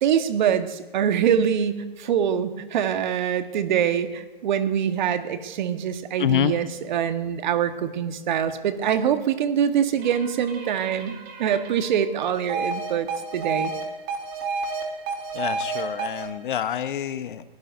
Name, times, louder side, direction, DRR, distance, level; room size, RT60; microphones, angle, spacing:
voice 1, 0.0-13.7, right 8 dB, 50° right, 9 dB, 1.4 m, -24 dB
voice 2, 6.2-6.5 15.3-17.4, left 10 dB, 55° left, 12 dB, 1.0 m, -26 dB
sound 1, 10.0-13.8 14.1-16.3, right 4 dB, 30° right, 3.1 m, -31 dB
21.5 x 17.5 x 2.7 m, 1.1 s
hypercardioid pair, 130°, 30 cm